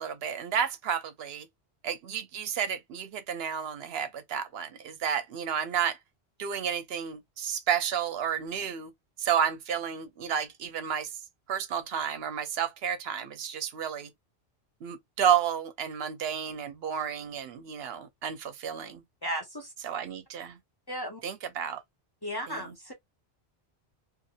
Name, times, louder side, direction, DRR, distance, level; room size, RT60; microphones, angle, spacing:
voice 1, 0.0-1.5 1.8-6.0 6.4-8.9 9.2-11.1 11.5-14.1 14.8-19.0 19.8-20.6 21.2-21.8 22.5-22.8, right 8 dB, 70° right, 0.8 m, -31 dB
voice 2, 19.2-19.7 20.9-21.2 22.2-22.9, equal, 25° left, 0.6 m, -35 dB
2.7 x 2.5 x 2.4 m
omnidirectional pair, 1.1 m